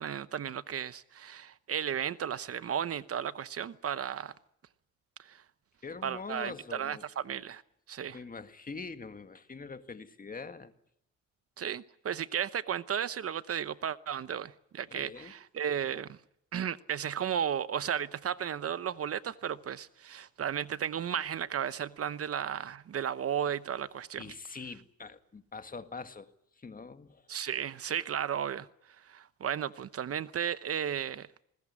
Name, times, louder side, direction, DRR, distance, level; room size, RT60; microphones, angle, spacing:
voice 1, 0.0-4.3 5.2-5.4 6.0-7.6 7.9-8.2 11.6-16.2 16.5-24.2 27.3-31.3, right 9 dB, 50° right, 0.9 m, -34 dB
voice 2, 5.8-7.0 8.1-10.7 14.9-15.3 24.2-27.4, left 4 dB, 30° left, 1.9 m, -44 dB
20.5 x 19.0 x 9.7 m
cardioid pair, 90°, 30 cm